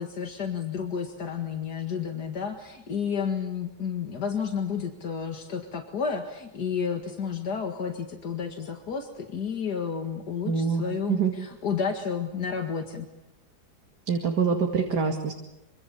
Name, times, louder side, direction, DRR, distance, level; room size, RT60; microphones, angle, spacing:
voice 1, 0.0-13.1, left 6 dB, 80° left, 4 dB, 2.5 m, -31 dB
voice 2, 10.4-11.3 14.1-15.3, right 6 dB, 85° right, 3 dB, 2.9 m, -25 dB
26.0 x 26.0 x 7.1 m, 0.93 s
omnidirectional pair, 1.7 m